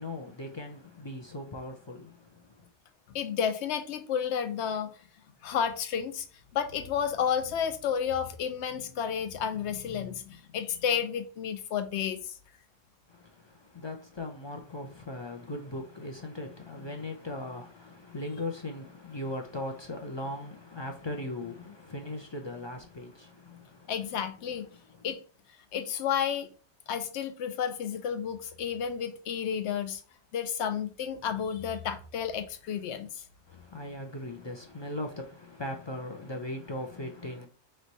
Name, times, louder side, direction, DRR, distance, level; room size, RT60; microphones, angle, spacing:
voice 1, 0.0-2.7 13.1-23.9 24.7-25.1 33.5-37.5, left 1 dB, 40° left, 0.4 m, -39 dB
voice 2, 3.1-4.9 5.4-6.3 6.5-12.3 23.9-24.7 25.0-25.2 25.7-26.5 26.9-30.0 30.3-33.2, left 8 dB, 80° left, 0.9 m, -31 dB
3.3 x 3.2 x 4.0 m
omnidirectional pair, 1.1 m